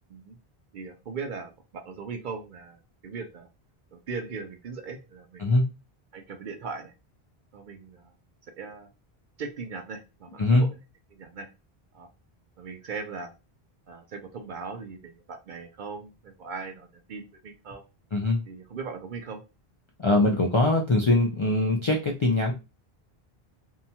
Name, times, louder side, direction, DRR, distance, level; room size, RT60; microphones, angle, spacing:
voice 1, 0.7-3.5 3.9-5.6 6.1-6.9 7.5-8.1 8.6-8.9 9.4-10.8 11.1-11.5 11.9-12.1 12.6-13.3 13.9-17.8 18.4-19.4, right 5 dB, 60° right, 5 dB, 0.6 m, -39 dB
voice 2, 20.0-22.5, left 2 dB, 50° left, 0 dB, 0.3 m, -22 dB
2.7 x 2.2 x 2.7 m, 0.28 s
omnidirectional pair, 1.0 m